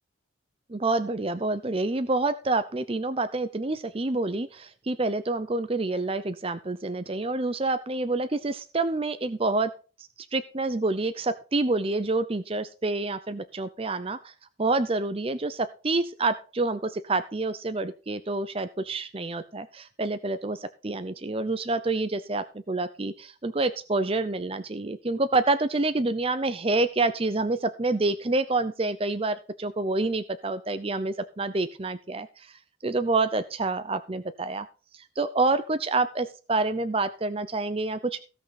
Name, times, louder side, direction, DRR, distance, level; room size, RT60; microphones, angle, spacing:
voice 1, 0.7-9.7 10.3-14.3 14.6-34.7 34.9-38.2, right 3 dB, 30° right, 11 dB, 0.6 m, -28 dB
16.0 x 6.2 x 5.2 m, 0.35 s
head